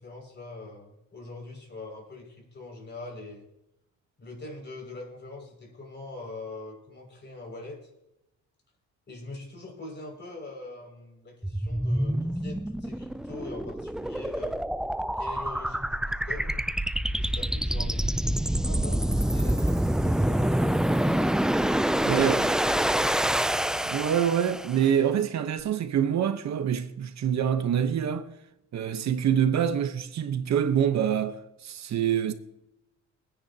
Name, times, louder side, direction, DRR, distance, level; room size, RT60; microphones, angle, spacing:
voice 1, 0.0-3.5 4.2-7.9 9.1-14.6 15.2-16.6 17.2-18.0 18.4-21.2 22.0-23.5, left 2 dB, 35° left, 6.1 m, -43 dB
sound 1, 11.4-24.8, right 1 dB, ahead, 0.4 m, -26 dB
voice 2, 22.0-22.4 23.8-28.3 28.7-31.4 31.6-32.3, right 9 dB, 65° right, 1.1 m, -25 dB
25.0 x 9.8 x 2.9 m
cardioid pair, 90°, 30 cm